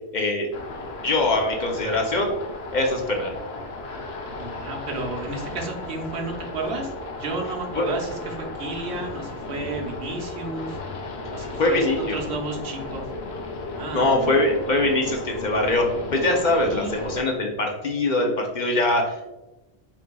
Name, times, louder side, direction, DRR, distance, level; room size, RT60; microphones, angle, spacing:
voice 1, 0.1-0.5 1.0-2.3 2.7-3.3 7.8-7.9 11.6-12.2 13.9-19.3, left 2 dB, 50° left, 1 dB, 0.7 m, -22 dB
sound 1, 0.5-17.2, left 2 dB, 75° left, 0.9 m, -35 dB
voice 2, 4.4-10.8 11.3-11.9 12.1-13.0 13.8-14.5 16.6-17.1, right 3 dB, 80° right, 1 dB, 1.0 m, -32 dB
4.4 x 3.8 x 2.2 m, 0.99 s
omnidirectional pair, 1.1 m